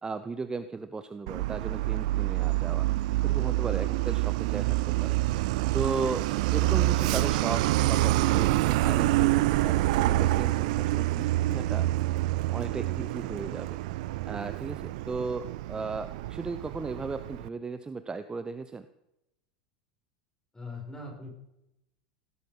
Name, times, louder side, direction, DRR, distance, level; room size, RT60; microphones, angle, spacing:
voice 1, 0.0-2.9 3.2-5.2 5.7-11.9 12.5-13.8 14.2-18.9, right 4 dB, 15° right, 12 dB, 0.9 m, -36 dB
Truck, 1.3-17.5, right 17 dB, 55° right, 0.5 m, -27 dB
voice 2, 20.5-21.3, left 2 dB, 10° left, 0 dB, 6.9 m, -40 dB
17.5 x 12.5 x 5.6 m, 0.85 s
figure-of-eight pair, 80°, 5 cm